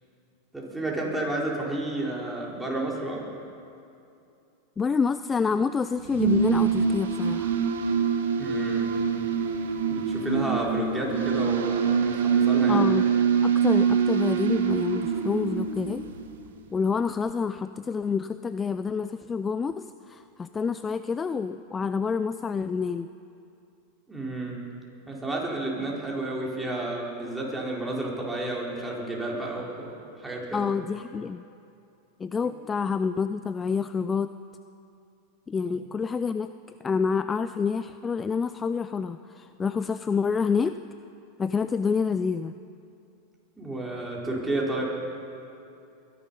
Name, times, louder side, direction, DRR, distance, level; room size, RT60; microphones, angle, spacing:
voice 1, 0.5-3.2 8.4-8.9 9.9-12.9 24.1-24.6 25.1-30.7 35.6-35.7 43.6-44.8, right 2 dB, 10° right, -3 dB, 4.0 m, -31 dB
voice 2, 4.8-7.6 12.7-13.1 13.4-16.0 16.7-23.1 30.5-31.4 32.2-34.3 35.5-36.5 36.8-40.8 41.4-42.5, left 5 dB, 20° left, 12 dB, 0.4 m, -28 dB
sound 1, 6.0-16.4, right 6 dB, 75° right, 1.4 m, -24 dB
22.5 x 11.0 x 5.4 m, 2.6 s
hypercardioid pair, 95°, 0 cm